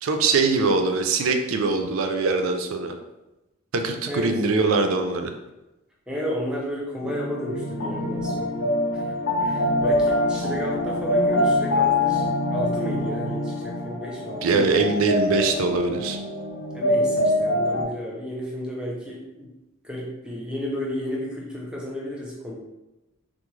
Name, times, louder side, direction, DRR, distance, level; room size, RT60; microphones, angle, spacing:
voice 1, 0.0-3.0 3.7-5.3 14.4-16.2, right 3 dB, 75° right, 6 dB, 0.4 m, -22 dB
voice 2, 6.1-9.1 9.4-14.7 16.7-19.5 19.8-22.5, equal, 5° right, -3 dB, 0.5 m, -32 dB
sound 1, 7.0-17.8, left 1 dB, 75° left, 0.6 m, -24 dB
3.6 x 2.0 x 3.0 m, 0.98 s
head